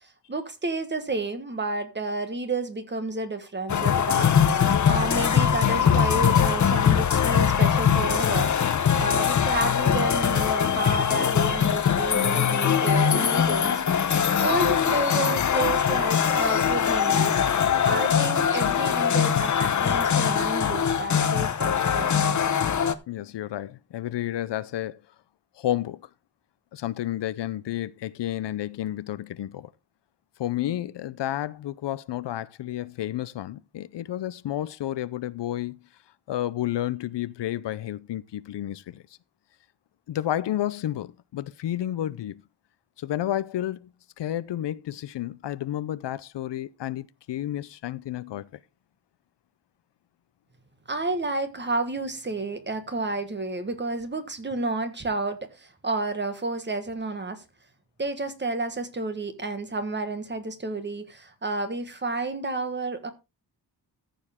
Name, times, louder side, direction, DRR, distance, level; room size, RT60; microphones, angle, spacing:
voice 1, 0.0-4.4 4.9-8.5 9.0-13.8 14.4-17.4 17.8-22.1 50.9-57.4 58.0-63.1, right 2 dB, 25° right, 1.4 m, -30 dB
sound 1, 3.7-22.9, left 8 dB, 45° left, 0.8 m, -22 dB
voice 2, 23.1-25.0 25.6-26.1 26.7-29.7 30.4-35.8 36.3-39.0 40.1-42.4 43.0-43.9 44.2-48.5, left 12 dB, 80° left, 0.6 m, -31 dB
14.0 x 7.0 x 3.6 m
wide cardioid pair, 150°, 42 cm